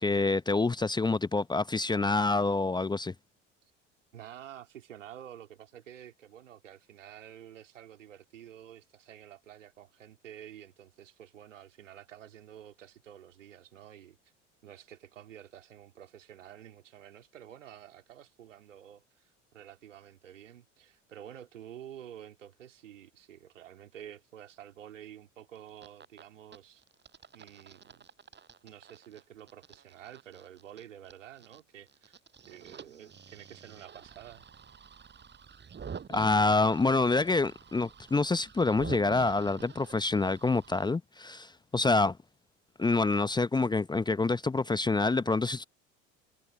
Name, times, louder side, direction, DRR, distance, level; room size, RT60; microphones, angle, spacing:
voice 1, 0.0-3.1 36.1-42.2 42.8-45.6, left 3 dB, 10° left, 0.9 m, -27 dB
voice 2, 4.1-14.2 14.6-26.8 27.3-28.1 28.6-32.2 32.5-34.4, right 10 dB, 75° right, 3.2 m, -50 dB
sound 1, 25.6-26.2 26.5-31.6 31.9-40.8, right 6 dB, 30° right, 7.4 m, -48 dB
figure-of-eight pair, 70°, 38 cm